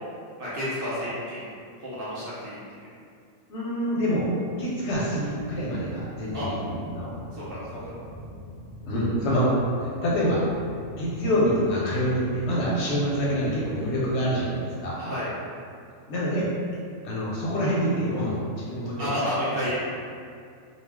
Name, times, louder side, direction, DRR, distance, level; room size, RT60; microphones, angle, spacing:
voice 1, 0.4-1.5 1.8-2.8 6.3-6.5 7.3-7.6 15.0-15.3 19.0-19.8, equal, 55° right, -10 dB, 0.7 m, -30 dB
voice 2, 3.5-4.3 4.5-7.1 7.7-7.8 8.9-9.5 9.8-10.4 10.9-15.0 16.1-16.5 17.0-19.1, equal, 65° left, -6 dB, 0.8 m, -26 dB
sound 1, 5.3-13.9, equal, 25° left, 0.7 m, -43 dB
2.4 x 2.2 x 3.3 m, 2.3 s
omnidirectional pair, 1.4 m